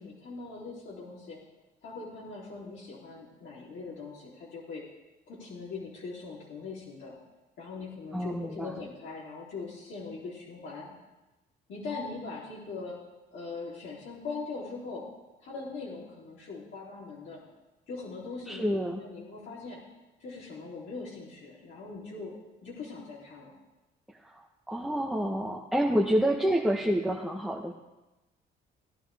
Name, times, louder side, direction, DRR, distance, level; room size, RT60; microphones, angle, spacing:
voice 1, 0.0-1.4 1.8-4.8 5.3-7.1 7.6-10.9 11.7-13.0 13.3-15.1 15.4-17.4 17.9-18.7 19.0-19.8 20.2-22.3 22.6-23.5, left 4 dB, 70° left, -7 dB, 3.6 m, -41 dB
voice 2, 8.1-8.8 18.5-19.0 24.2-24.4 24.7-27.7, equal, ahead, 0 dB, 1.2 m, -28 dB
16.5 x 11.0 x 3.5 m, 1.1 s
cardioid pair, 90°, 20 cm